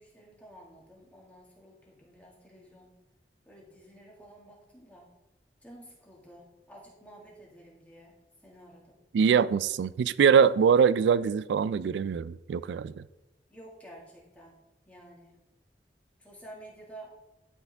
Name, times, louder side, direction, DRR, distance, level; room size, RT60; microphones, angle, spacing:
voice 1, 0.0-3.0 3.5-5.1 5.6-9.0 13.5-14.6 14.9-15.3 16.2-17.2, right 1 dB, 10° left, 1.9 m, -51 dB
voice 2, 9.1-12.9, right 6 dB, 80° right, 0.3 m, -23 dB
11.5 x 4.7 x 3.4 m
head